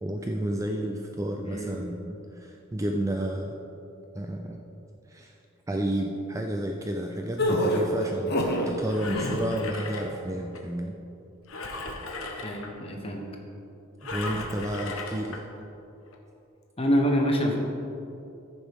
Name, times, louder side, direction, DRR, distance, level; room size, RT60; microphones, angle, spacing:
voice 1, 0.0-3.5 4.1-4.6 5.1-5.3 5.7-10.9 14.0-15.4, right 1 dB, 15° right, 2 dB, 0.4 m, -31 dB
voice 2, 1.4-1.8 12.4-13.2 16.8-17.5, equal, 25° left, 1 dB, 1.2 m, -26 dB
sound 1, 7.4-8.7 9.1-9.5, equal, 50° left, 1.2 m, -26 dB
Engine, 8.7-10.6 11.5-12.7 14.0-15.4 16.1-16.2, left 2 dB, 75° left, 1.1 m, -37 dB
14.5 x 7.2 x 3.7 m, 2.8 s
head